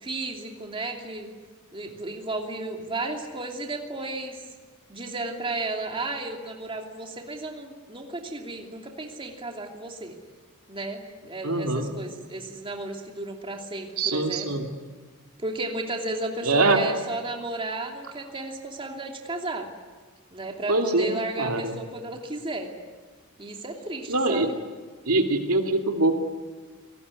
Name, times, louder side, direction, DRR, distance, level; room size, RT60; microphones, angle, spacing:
voice 1, 0.0-1.3 1.7-4.4 4.9-10.2 10.7-14.5 15.4-19.7 20.3-22.7 23.4-24.5, right 2 dB, 25° right, 2 dB, 2.7 m, -33 dB
voice 2, 11.4-11.9 14.0-14.7 16.4-16.8 20.7-21.7 24.1-24.5 25.1-26.1, right 2 dB, 75° right, 4 dB, 2.6 m, -23 dB
28.5 x 19.0 x 9.7 m, 1.5 s
head